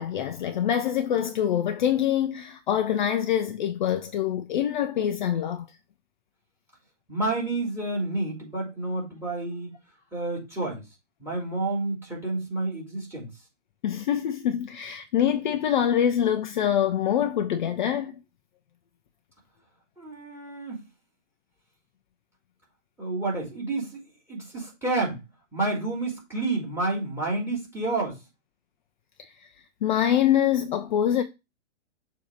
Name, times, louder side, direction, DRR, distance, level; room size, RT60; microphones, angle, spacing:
voice 1, 0.0-5.6 13.8-18.1 29.2-29.5 29.8-31.2, left 10 dB, 40° left, 0.5 m, -25 dB
voice 2, 7.1-9.7 10.1-10.9 11.2-13.3 20.0-20.8 23.0-24.0 24.3-25.2 25.5-28.2, right 2 dB, 5° right, 3.1 m, -29 dB
6.9 x 2.9 x 5.0 m
figure-of-eight pair, 115°, 36 cm